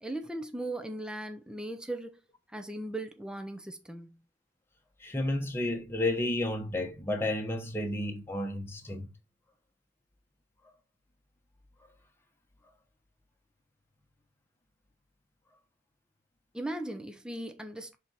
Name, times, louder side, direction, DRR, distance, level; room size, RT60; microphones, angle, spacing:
voice 1, 0.0-2.1 2.5-4.2 16.5-18.0, right 1 dB, 5° right, 0.6 m, -38 dB
voice 2, 5.0-9.1, left 1 dB, 10° left, 1.0 m, -31 dB
6.0 x 4.1 x 4.0 m
head